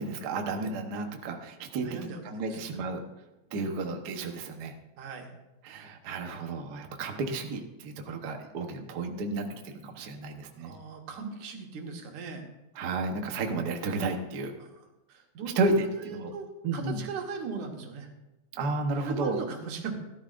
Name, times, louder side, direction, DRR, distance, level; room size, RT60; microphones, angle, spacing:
voice 1, 0.0-3.0 3.5-4.7 5.6-9.5 9.8-10.8 12.8-14.5 15.5-16.3 16.6-17.0 18.5-19.4, right 3 dB, 60° right, 4 dB, 1.0 m, -32 dB
voice 2, 1.7-2.6 5.0-5.3 10.6-12.5 14.6-14.7 15.1-15.5 16.0-18.1 19.0-19.9, right 5 dB, 85° right, 2 dB, 2.9 m, -38 dB
17.0 x 12.5 x 2.5 m, 0.98 s
omnidirectional pair, 3.3 m